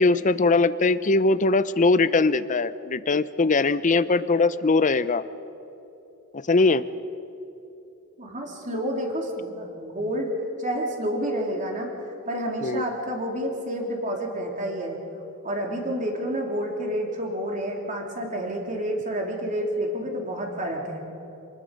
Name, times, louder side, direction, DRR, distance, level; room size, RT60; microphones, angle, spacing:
voice 1, 0.0-5.2 6.3-6.8 12.6-12.8, left 3 dB, 35° left, 14 dB, 0.6 m, -21 dB
voice 2, 8.2-10.3 10.6-11.9 12.3-15.0 15.4-21.0, equal, 35° right, 0 dB, 3.2 m, -29 dB
28.0 x 20.0 x 5.3 m, 2.8 s
head